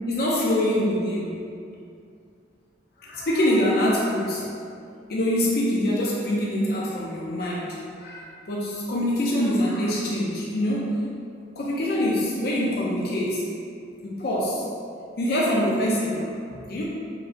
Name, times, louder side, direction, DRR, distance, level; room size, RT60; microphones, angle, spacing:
voice 1, 0.1-1.3 3.0-4.5 5.1-11.0 11.5-13.4 14.0-14.6 15.2-16.8, left 1 dB, 55° left, -5 dB, 0.5 m, -25 dB
4.6 x 3.1 x 2.5 m, 2.4 s
head